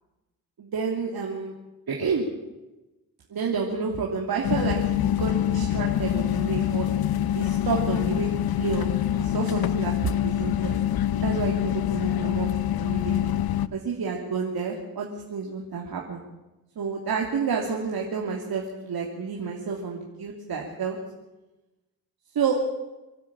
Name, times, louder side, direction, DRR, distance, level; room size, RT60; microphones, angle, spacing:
voice 1, 0.6-1.5 1.9-2.3 3.3-6.9 7.3-8.3 8.6-9.9 10.2-10.8 11.2-12.5 12.8-13.3 13.7-16.2 16.8-21.0 22.3-22.6, right 5 dB, 75° right, -1 dB, 3.0 m, -30 dB
sound 1, 4.4-13.7, left 11 dB, 75° left, 0.8 m, -25 dB
25.5 x 12.5 x 8.7 m, 1.0 s
cardioid pair, 105°, 37 cm